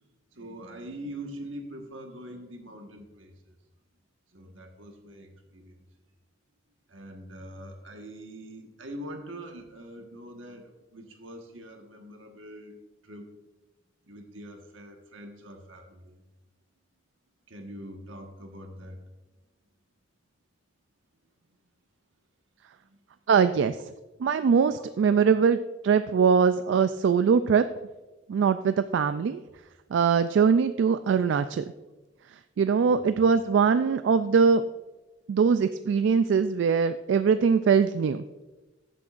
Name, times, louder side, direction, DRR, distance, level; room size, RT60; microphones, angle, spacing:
voice 1, 0.3-3.5 4.3-5.8 6.9-13.3 14.0-16.2 17.5-19.0 22.9-23.0 25.0-25.2 32.8-33.2 37.3-37.4, right 1 dB, 90° right, 3 dB, 1.4 m, -43 dB
voice 2, 23.3-23.8 24.2-25.6 25.8-27.7 28.3-29.4 29.9-31.6 32.6-34.6 35.3-38.2, right 6 dB, 70° right, 11 dB, 0.3 m, -22 dB
13.5 x 7.6 x 2.5 m, 1.1 s
head